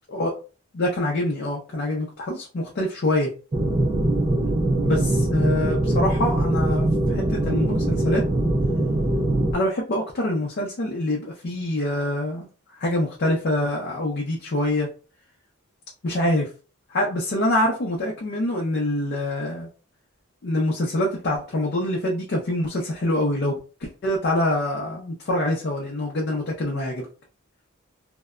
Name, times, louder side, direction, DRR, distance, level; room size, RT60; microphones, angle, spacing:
voice 1, 0.7-3.3 4.8-8.2 9.5-12.5 12.8-14.9 16.0-16.5 16.9-19.7 20.4-23.6 24.0-27.1, left 1 dB, 50° left, -2 dB, 0.5 m, -25 dB
sound 1, 3.5-9.5, right 1 dB, 25° right, 0.4 m, -22 dB
2.7 x 2.1 x 2.3 m, 0.36 s
head